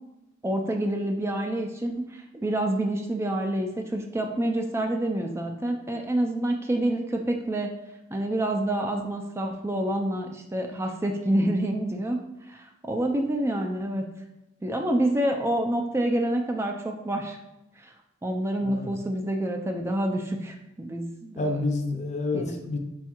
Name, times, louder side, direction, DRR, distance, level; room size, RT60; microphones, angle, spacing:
voice 1, 0.4-7.7 8.1-12.2 12.5-14.1 14.6-17.4 17.8-17.9 18.2-21.6 22.3-22.5, right 1 dB, 15° right, 3 dB, 0.3 m, -27 dB
voice 2, 21.4-22.8, left 2 dB, 40° left, 4 dB, 0.5 m, -28 dB
4.4 x 2.3 x 4.3 m, 0.94 s
head